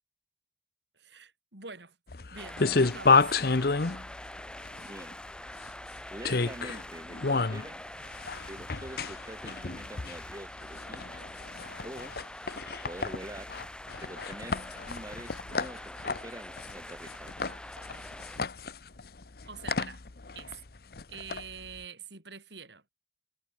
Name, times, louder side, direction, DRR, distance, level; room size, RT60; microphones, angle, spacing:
voice 1, 1.0-2.0 2.3-3.3 19.4-20.0 20.3-20.5 21.1-22.8, right 5 dB, 75° right, 6.0 m, -45 dB
sound 1, 2.1-21.8, left 4 dB, 55° left, 0.9 m, -31 dB
sound 2, 2.4-18.4, left 1 dB, 5° left, 4.4 m, -45 dB
voice 2, 4.8-5.2 6.1-7.8 8.5-11.1 11.8-12.2 12.8-13.5 14.0-17.3, right 1 dB, 20° right, 1.7 m, -45 dB
head